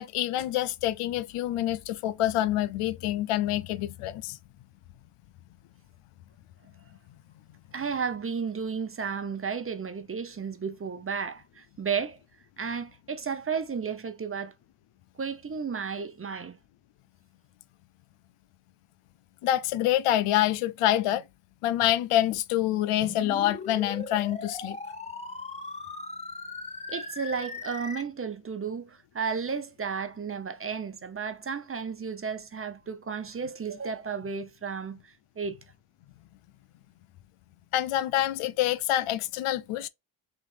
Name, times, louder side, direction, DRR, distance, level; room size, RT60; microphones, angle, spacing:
voice 1, 0.0-4.4 19.4-21.2 21.6-24.8 37.7-39.9, left 13 dB, 85° left, 0.6 m, -26 dB
voice 2, 7.7-12.2 12.6-14.5 15.2-16.6 26.9-35.6, right 6 dB, 25° right, 0.7 m, -33 dB
sound 1, 23.0-28.0, left 3 dB, 15° left, 0.7 m, -39 dB
3.7 x 3.4 x 3.3 m
cardioid pair, 85°, 50 cm